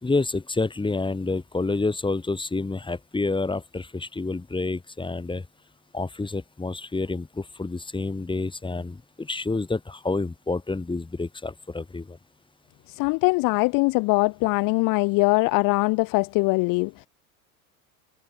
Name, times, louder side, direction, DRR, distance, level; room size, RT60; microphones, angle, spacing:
voice 1, 0.0-5.4 5.9-12.2, left 3 dB, 10° left, 3.5 m, -28 dB
voice 2, 12.9-17.1, left 26 dB, 50° left, 0.8 m, -22 dB
hypercardioid pair, 90°, 43 cm